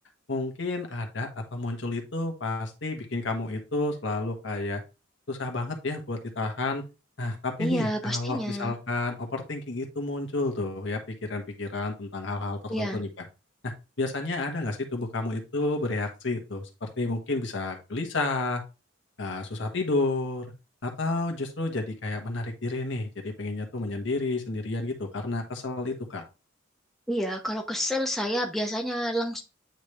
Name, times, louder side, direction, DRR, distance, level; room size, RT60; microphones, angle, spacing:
voice 1, 0.3-4.8 5.3-6.8 7.2-13.1 13.6-13.7 14.0-18.6 19.2-20.5 20.8-26.2, left 2 dB, 65° left, 1.4 m, -31 dB
voice 2, 7.6-8.7 12.7-13.0 27.1-29.4, equal, ahead, 0.8 m, -29 dB
9.1 x 3.3 x 3.3 m
head